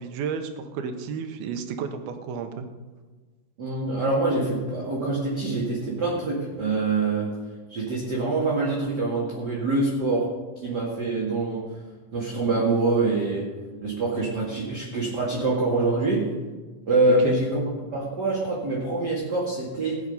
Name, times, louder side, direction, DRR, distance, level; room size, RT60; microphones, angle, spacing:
voice 1, 0.0-2.6 17.2-17.4, right 6 dB, 80° right, 7 dB, 2.9 m, -32 dB
voice 2, 3.6-7.3 7.7-10.3 10.6-11.8 12.1-13.5 13.8-16.2 16.9-17.6 17.9-20.0, right 3 dB, 35° right, -5 dB, 2.1 m, -25 dB
18.0 x 7.9 x 5.5 m, 1.3 s
omnidirectional pair, 4.3 m